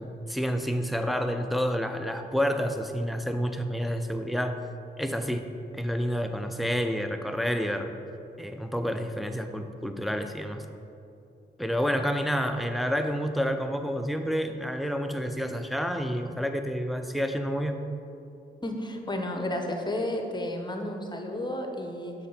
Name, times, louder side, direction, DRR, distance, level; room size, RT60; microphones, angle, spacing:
voice 1, 0.0-4.6 5.0-5.5 5.7-7.9 8.4-10.6 11.6-17.8, equal, ahead, 6 dB, 0.5 m, -29 dB
voice 2, 18.6-22.1, left 1 dB, 20° left, 3 dB, 0.8 m, -32 dB
6.6 x 4.4 x 3.9 m, 2.7 s
cardioid pair, 55°, 21 cm